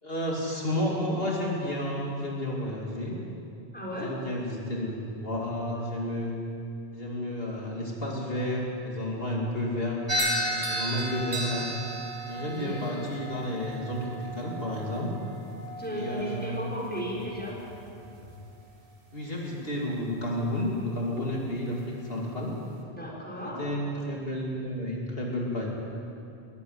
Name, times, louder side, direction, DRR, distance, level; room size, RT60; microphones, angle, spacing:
voice 1, 0.0-3.2 3.9-6.4 6.9-11.7 12.2-15.1 15.9-16.6 19.1-22.5 23.4-25.7, left 1 dB, 70° left, -2 dB, 2.9 m, -31 dB
voice 2, 3.7-4.1 4.8-4.9 12.2-12.8 15.8-17.6 22.9-23.8 24.1-24.2, left 1 dB, 10° left, -4 dB, 5.3 m, -35 dB
sound 1, 10.1-18.4, right 1 dB, 65° right, 2.7 m, -35 dB
21.5 x 14.5 x 9.5 m, 2.6 s
omnidirectional pair, 1.0 m